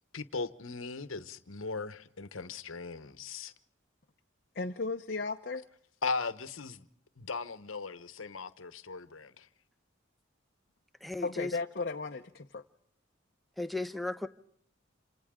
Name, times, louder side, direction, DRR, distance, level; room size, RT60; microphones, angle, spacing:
voice 1, 0.1-3.5 6.0-6.8 7.2-9.5, left 4 dB, 85° left, 1.1 m, -38 dB
voice 2, 4.5-5.6 11.2-12.6, left 3 dB, 50° left, 0.8 m, -35 dB
voice 3, 11.0-11.5 13.6-14.3, left 2 dB, ahead, 0.8 m, -35 dB
28.5 x 26.5 x 3.7 m
head